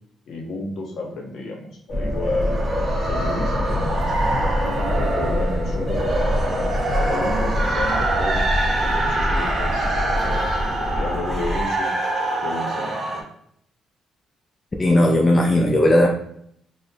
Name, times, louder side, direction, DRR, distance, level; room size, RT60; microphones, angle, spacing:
voice 1, 0.3-2.6 3.1-4.5 4.9-8.4 8.8-11.9 12.4-13.2, left 2 dB, 60° left, 0 dB, 0.9 m, -32 dB
sound 1, 1.9-11.7, left 1 dB, 5° left, 1.1 m, -25 dB
sound 2, 2.1-13.2, right 2 dB, 25° right, 0.6 m, -25 dB
voice 2, 14.8-16.1, left 1 dB, 20° left, 0 dB, 0.4 m, -16 dB
4.3 x 2.1 x 2.6 m, 0.68 s
cardioid pair, 150°, 0 cm